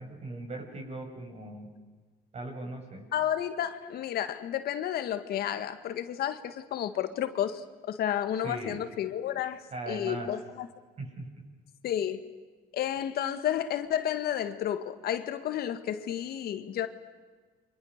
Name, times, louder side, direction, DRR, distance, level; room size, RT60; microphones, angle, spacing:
voice 1, 0.0-1.7 2.3-3.1 8.4-8.8 9.7-10.3 11.0-11.3, right 2 dB, 40° right, 7.7 m, -39 dB
voice 2, 3.1-9.6 9.9-10.7 11.8-12.2 12.7-16.9, left 10 dB, 65° left, 1.8 m, -31 dB
29.0 x 24.5 x 6.6 m
cardioid pair, 110°, 17 cm